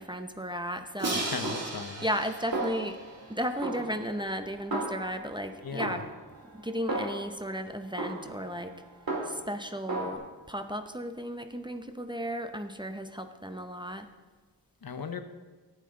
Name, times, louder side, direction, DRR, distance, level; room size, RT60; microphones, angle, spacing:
voice 1, 0.0-1.3 2.0-3.0 3.3-6.0 6.5-8.7 9.2-10.2 10.5-14.1, equal, 10° right, 6 dB, 0.7 m, -34 dB
Crash cymbal, 1.0-4.0, right 2 dB, 40° right, 1.8 m, -36 dB
voice 2, 1.1-2.0 5.6-6.0 14.8-15.2, left 5 dB, 60° left, 8 dB, 0.9 m, -37 dB
Snare drum, 1.4-2.3 2.5-3.3 3.6-5.4 5.8-7.5 8.0-9.6 9.9-10.2, right 2 dB, 60° right, 2.5 m, -36 dB
14.0 x 9.0 x 3.8 m, 1.3 s
wide cardioid pair, 85°, 40 cm